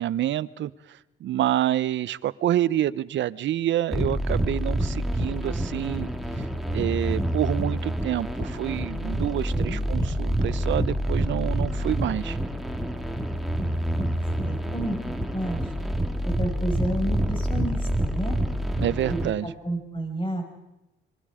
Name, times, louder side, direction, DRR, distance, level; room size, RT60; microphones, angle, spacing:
voice 1, 0.0-6.1 6.7-12.4 18.8-19.5, right 12 dB, 70° right, 18 dB, 0.8 m, -27 dB
sound 1, 3.9-19.3, right 1 dB, ahead, 2.4 m, -27 dB
voice 2, 13.6-14.0 14.4-15.6 16.4-18.4 19.1-19.3 19.6-20.4, right 1 dB, 25° left, 3 dB, 6.1 m, -31 dB
26.5 x 22.5 x 5.0 m, 0.96 s
cardioid pair, 90°, 20 cm